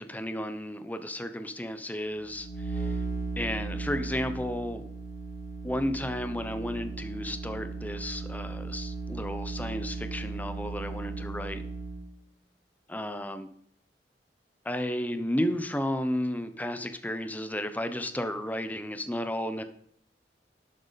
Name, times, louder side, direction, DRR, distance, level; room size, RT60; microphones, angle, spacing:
voice 1, 0.0-3.0 3.4-4.8 5.6-11.6 12.9-13.5 14.6-19.6, left 1 dB, 10° left, 9 dB, 0.8 m, -33 dB
sound 1, 2.2-12.1, right 3 dB, 45° left, 2.9 m, -36 dB
12.0 x 9.3 x 4.1 m, 0.65 s
head